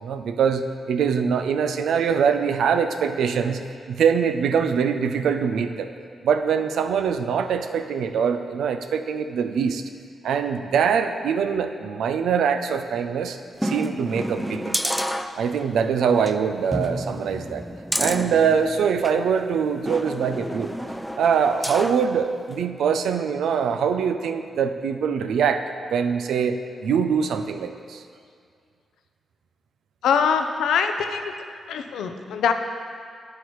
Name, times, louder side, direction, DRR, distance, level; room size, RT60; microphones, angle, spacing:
voice 1, 0.0-3.6 3.9-5.9 6.2-9.8 10.2-14.9 15.4-17.6 18.0-20.7 21.2-25.6 25.9-28.0, right 6 dB, 85° right, 8 dB, 0.4 m, -23 dB
sound 1, 13.6-15.8 16.2-16.3 16.7-19.2 19.9-22.1 22.5-22.6, equal, ahead, 0.4 m, -30 dB
voice 2, 30.0-31.3 31.7-32.5, left 6 dB, 90° left, 6 dB, 0.5 m, -23 dB
9.8 x 8.2 x 3.1 m, 2.2 s
cardioid pair, 70°, 0 cm